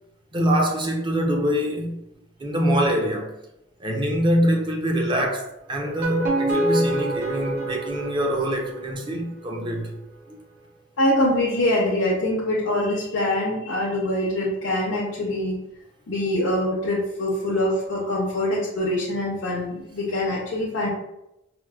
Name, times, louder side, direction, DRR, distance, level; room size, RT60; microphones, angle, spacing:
voice 1, 0.3-2.0 2.4-3.3 3.8-9.9 10.3-10.4, equal, 25° right, 0.5 m, -24 dB
sound 1, 5.8-8.9, right 1 dB, 45° right, 0.8 m, -26 dB
voice 2, 11.0-15.6 16.1-20.9, left 1 dB, 75° left, 0.6 m, -24 dB
4.3 x 2.0 x 2.3 m
head